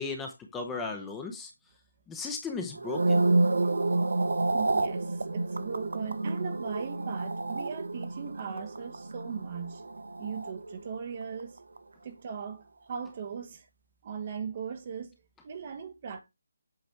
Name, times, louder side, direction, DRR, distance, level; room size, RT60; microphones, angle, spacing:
voice 1, 0.0-1.5 2.1-3.2, left 4 dB, 10° left, 0.8 m, -36 dB
sound 1, 2.7-11.1 11.4-11.8, right 2 dB, 70° right, 0.6 m, -29 dB
voice 2, 4.5-9.9 10.2-11.6 12.0-13.7 14.0-15.2 15.4-16.2, right 6 dB, 40° right, 1.0 m, -38 dB
7.9 x 3.2 x 4.5 m
figure-of-eight pair, 155°, 0 cm